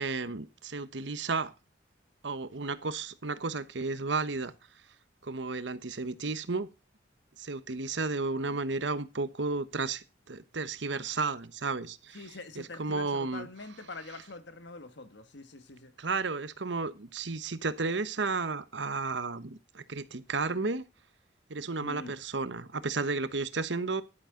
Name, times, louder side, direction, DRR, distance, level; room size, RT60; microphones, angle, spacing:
voice 1, 0.0-1.5 2.2-4.5 5.2-6.7 7.4-12.2 12.8-13.5 16.0-20.8 21.5-24.0, right 3 dB, 75° right, 1.1 m, -33 dB
voice 2, 12.1-16.0 21.8-22.1, left 3 dB, 75° left, 1.6 m, -44 dB
11.5 x 10.5 x 3.8 m
head